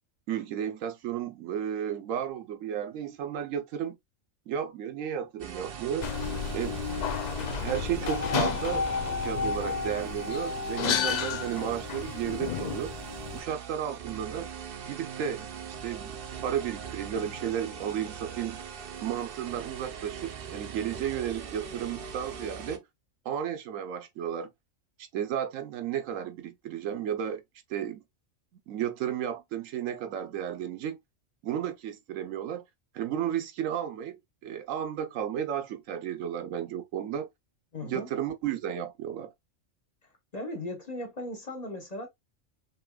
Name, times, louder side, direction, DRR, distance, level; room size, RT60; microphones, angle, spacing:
voice 1, 0.3-4.0 4.5-6.1 6.5-6.8 7.6-13.0 13.3-14.5 14.8-16.2 16.4-18.6 19.0-22.8 23.2-24.5 25.1-27.4 27.7-28.0 28.7-31.0 31.4-32.6 32.9-37.3 37.8-39.3, right 9 dB, 85° right, 1.1 m, -33 dB
sound 1, 5.4-22.8, right 6 dB, 55° right, 0.8 m, -41 dB
sound 2, 6.0-13.4, left 6 dB, 70° left, 0.4 m, -31 dB
voice 2, 37.7-38.1 40.3-42.1, left 1 dB, 35° left, 1.1 m, -37 dB
5.3 x 2.9 x 2.3 m
omnidirectional pair, 1.3 m